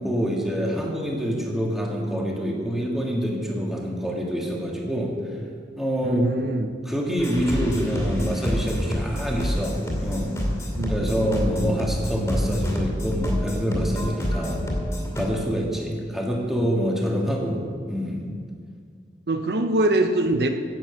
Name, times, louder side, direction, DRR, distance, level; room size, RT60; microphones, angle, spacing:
voice 1, 0.0-5.2 5.8-6.3 6.9-10.3 10.9-14.6 15.1-17.6 17.9-18.2, equal, ahead, -2 dB, 1.8 m, -26 dB
voice 2, 6.0-6.7 10.8-11.8 19.3-20.5, right 1 dB, 65° right, 6 dB, 0.7 m, -24 dB
sound 1, 7.2-15.2, equal, 15° left, 2.5 m, -28 dB
11.0 x 9.0 x 7.7 m, 2.1 s
head